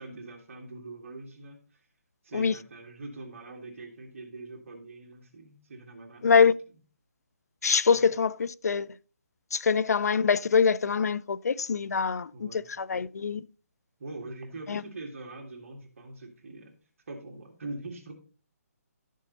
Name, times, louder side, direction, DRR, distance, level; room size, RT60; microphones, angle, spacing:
voice 1, 0.0-1.9 2.2-6.3 7.9-8.1 12.3-12.7 14.0-16.8 17.1-18.1, right 2 dB, 55° right, 2.3 m, -43 dB
voice 2, 6.2-6.5 7.6-8.9 9.5-13.4 14.7-14.8, left 6 dB, 75° left, 0.5 m, -24 dB
12.5 x 6.5 x 3.9 m
hypercardioid pair, 160°, 9 cm